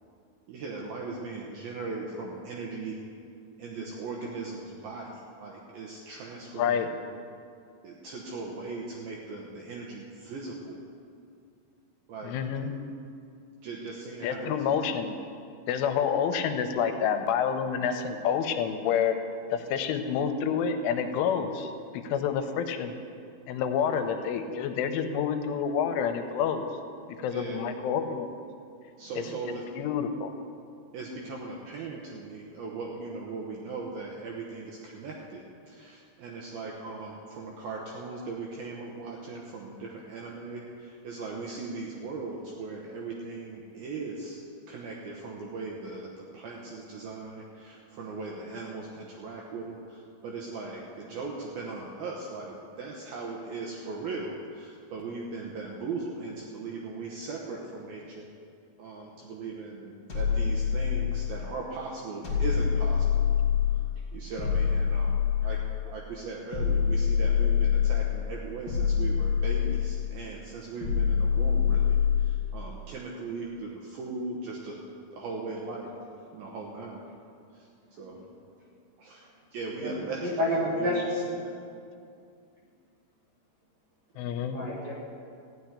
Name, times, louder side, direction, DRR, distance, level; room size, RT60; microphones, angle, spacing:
voice 1, 0.5-3.0 3.6-5.1 5.4-6.8 7.8-10.8 12.1-12.4 13.6-14.6 27.3-27.6 29.0-29.8 30.9-44.4 44.7-58.3 58.8-63.0 63.7-63.8 64.1-65.2 65.4-65.6 65.8-72.0 72.2-74.8 75.1-75.9 76.3-77.0 78.0-78.2 79.0-79.2 79.5-80.4 80.8-81.1 81.4-81.5, right 3 dB, 75° right, -2 dB, 2.3 m, -38 dB
voice 2, 6.5-6.9 12.2-12.7 14.2-15.2 15.7-19.2 19.5-22.9 23.5-26.7 27.2-28.3 29.2-30.3 84.2-84.7, left 7 dB, 90° left, 7 dB, 3.2 m, -28 dB
sound 1, 60.1-61.4 62.2-63.9 64.4-65.8 66.5-68.1 68.7-70.1 70.8-72.4, left 7 dB, 25° left, 2.3 m, -25 dB
voice 3, 79.8-81.3 84.5-84.9, left 1 dB, 50° right, -5 dB, 2.2 m, -29 dB
14.5 x 6.4 x 9.7 m, 2.4 s
omnidirectional pair, 5.6 m